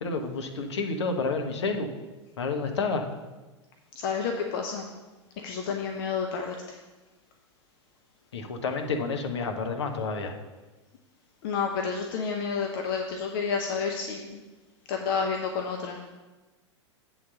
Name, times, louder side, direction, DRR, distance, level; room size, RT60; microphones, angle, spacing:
voice 1, 0.0-1.9 2.4-3.0 8.3-10.3, left 4 dB, 65° left, 4 dB, 1.0 m, -29 dB
voice 2, 3.9-4.9 5.4-6.8 11.4-14.4 14.9-16.1, left 5 dB, 50° left, 3 dB, 0.7 m, -30 dB
7.7 x 4.0 x 6.8 m, 1.2 s
figure-of-eight pair, 95°, 15 cm